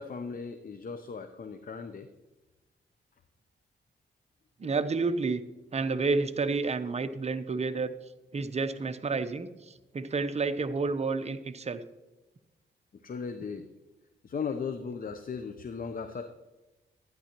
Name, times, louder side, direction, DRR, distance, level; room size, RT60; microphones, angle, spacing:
voice 1, 0.0-2.1 4.6-4.7 13.0-13.7 14.2-16.2, left 5 dB, 45° left, 8 dB, 0.7 m, -37 dB
voice 2, 4.6-5.4 5.7-7.9 8.3-11.8, right 4 dB, 35° right, 10 dB, 0.7 m, -30 dB
13.0 x 9.5 x 3.0 m, 1.1 s
cardioid pair, 70°, 20 cm